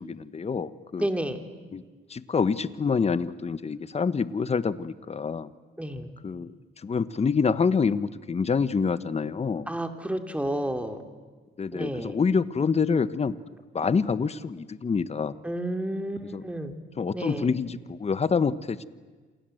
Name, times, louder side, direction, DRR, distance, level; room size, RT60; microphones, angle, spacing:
voice 1, 0.0-1.1 1.7-1.8 2.1-5.5 6.2-6.5 6.8-9.7 11.6-13.4 13.7-15.4 16.3-16.4 17.0-18.8, left 5 dB, 30° left, 15 dB, 1.2 m, -26 dB
voice 2, 1.0-1.4 5.8-6.1 9.7-11.0 11.7-12.2 15.4-16.8 17.1-17.5, right 1 dB, 5° right, 6 dB, 2.8 m, -31 dB
28.0 x 27.0 x 7.9 m, 1.4 s
cardioid pair, 90°, 20 cm